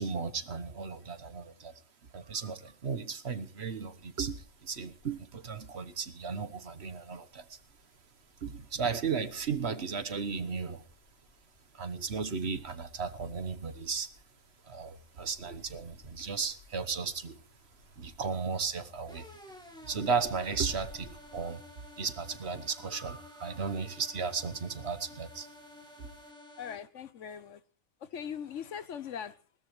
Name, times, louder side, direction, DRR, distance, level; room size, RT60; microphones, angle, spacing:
voice 1, 0.0-1.7 2.1-7.6 8.4-10.8 11.7-14.1 14.6-17.4 18.0-19.3 19.8-21.6 22.0-25.5 26.0-26.1, right 5 dB, 55° right, 1.3 m, -35 dB
sound 1, 3.6-21.4, left 1 dB, 50° left, 6.9 m, -61 dB
sound 2, 19.1-26.8, left 1 dB, 5° left, 2.2 m, -52 dB
voice 2, 26.6-27.6 28.1-29.3, left 8 dB, 65° left, 1.2 m, -40 dB
21.0 x 18.0 x 3.2 m
omnidirectional pair, 1.4 m